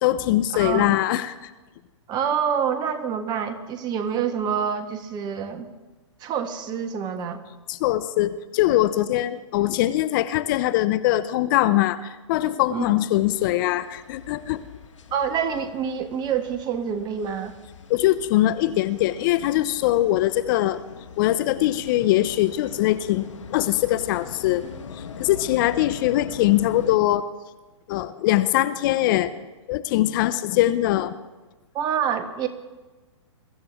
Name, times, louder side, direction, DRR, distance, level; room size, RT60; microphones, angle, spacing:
voice 1, 0.0-1.5 7.7-14.6 17.9-20.8 21.2-24.7 24.9-27.2 27.9-29.3 29.7-31.2, left 14 dB, 40° left, 14 dB, 0.6 m, -22 dB
voice 2, 0.5-0.9 2.1-5.7 6.2-7.4 12.7-13.0 15.1-17.6 31.7-32.5, right 7 dB, 25° right, 8 dB, 1.4 m, -27 dB
sound 1, 13.2-27.0, left 6 dB, 75° left, 1.6 m, -42 dB
22.5 x 13.5 x 3.5 m, 1.2 s
hypercardioid pair, 125°, 16 cm